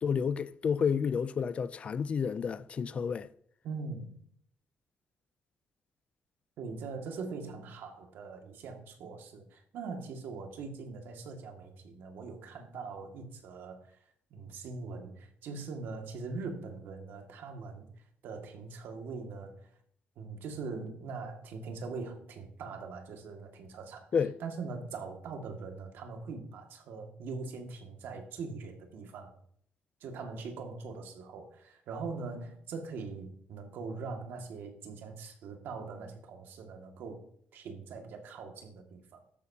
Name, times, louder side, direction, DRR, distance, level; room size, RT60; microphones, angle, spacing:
voice 1, 0.0-3.3 24.1-24.3, left 6 dB, 35° left, 0.4 m, -30 dB
voice 2, 3.6-4.2 6.6-14.0 14.3-17.9 18.2-19.7 20.2-24.1 24.4-29.4 30.0-37.2 37.5-39.2, right 4 dB, 85° right, 2.0 m, -42 dB
13.0 x 11.0 x 2.8 m
cardioid pair, 175°, 4 cm